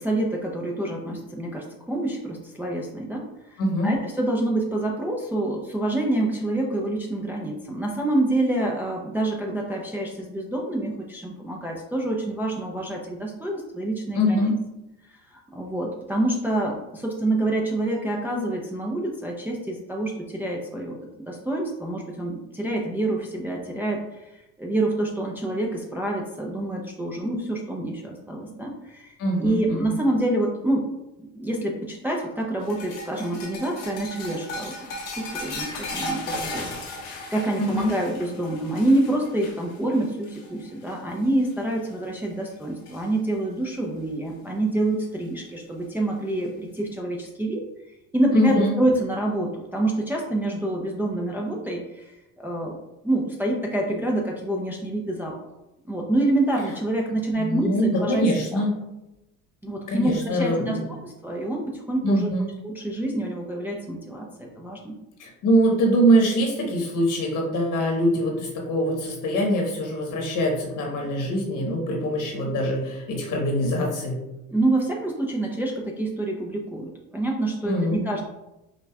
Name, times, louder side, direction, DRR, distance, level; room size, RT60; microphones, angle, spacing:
voice 1, 0.0-14.4 15.3-21.0 21.3-24.3 24.6-30.9 31.3-34.8 35.2-47.6 48.1-52.8 53.0-55.3 55.9-58.3 58.5-58.6 59.6-62.3 62.6-64.9 74.5-78.3, right 1 dB, 5° right, -1 dB, 0.5 m, -27 dB
voice 2, 3.6-3.9 14.1-14.5 29.2-30.0 37.6-37.9 48.3-48.8 57.4-58.7 59.9-60.8 62.0-62.5 65.2-74.2 77.6-78.0, equal, 55° left, 0 dB, 1.3 m, -23 dB
sound 1, 32.6-41.1 41.4-41.8 42.2-43.0 44.4-44.5 45.8-45.9, left 2 dB, 80° left, 1.3 m, -36 dB
5.4 x 2.4 x 2.3 m, 0.94 s
supercardioid pair, 80°, 38 cm